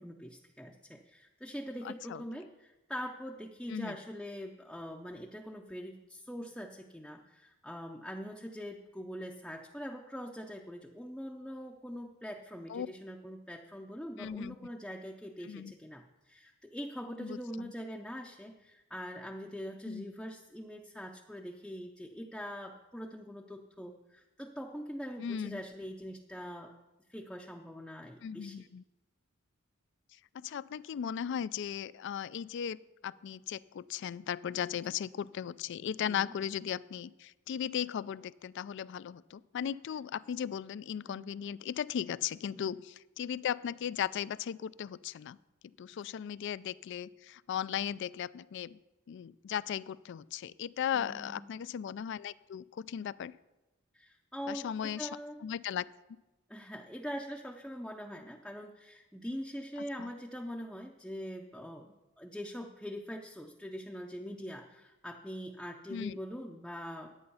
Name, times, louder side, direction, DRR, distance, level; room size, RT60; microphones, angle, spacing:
voice 1, 0.0-26.7 27.1-28.7 36.0-36.3 41.1-41.3 42.5-42.6 50.9-51.6 53.9-55.4 56.5-67.2, equal, 5° left, 0 dB, 0.6 m, -43 dB
voice 2, 1.8-2.2 3.7-4.0 12.7-12.9 14.2-14.6 15.4-15.7 17.2-17.7 19.9-20.1 25.2-25.6 28.2-28.8 30.3-32.8 33.0-42.8 43.2-45.4 45.8-48.8 49.1-53.3 54.5-55.1 55.4-55.9 60.0-60.1 65.9-66.2, left 9 dB, 60° left, 19 dB, 0.3 m, -37 dB
11.0 x 8.8 x 5.6 m, 1.0 s
head